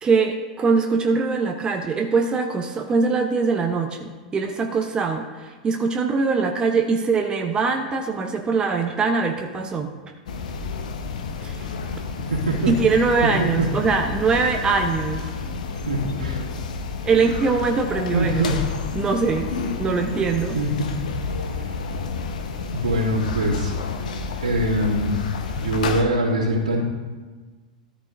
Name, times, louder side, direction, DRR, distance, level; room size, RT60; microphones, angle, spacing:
voice 1, 0.0-9.9 11.4-11.7 12.7-15.2 17.0-18.6 18.9-19.5 19.8-20.6, right 4 dB, 20° right, 4 dB, 0.9 m, -22 dB
sound 1, 10.3-26.0, left 4 dB, 65° left, 1.1 m, -30 dB
voice 2, 12.3-13.0 13.4-13.7 15.9-16.5 18.1-18.5 20.5-20.9 22.7-23.9 24.4-25.1 25.5-26.8, right 1 dB, 80° right, -5 dB, 2.6 m, -23 dB
13.5 x 10.5 x 2.6 m, 1.4 s
figure-of-eight pair, 95°, 4 cm